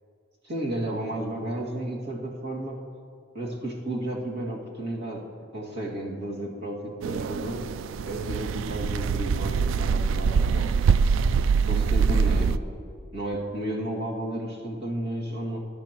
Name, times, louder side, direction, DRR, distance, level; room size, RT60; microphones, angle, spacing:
voice 1, 0.4-2.8 3.3-5.2 5.5-7.7 8.1-10.7 11.6-12.6 13.1-15.6, right 1 dB, 60° right, -3 dB, 2.3 m, -32 dB
sound 1, 7.0-12.6, right 5 dB, 75° right, 0.3 m, -24 dB
21.0 x 11.0 x 3.0 m, 2.3 s
head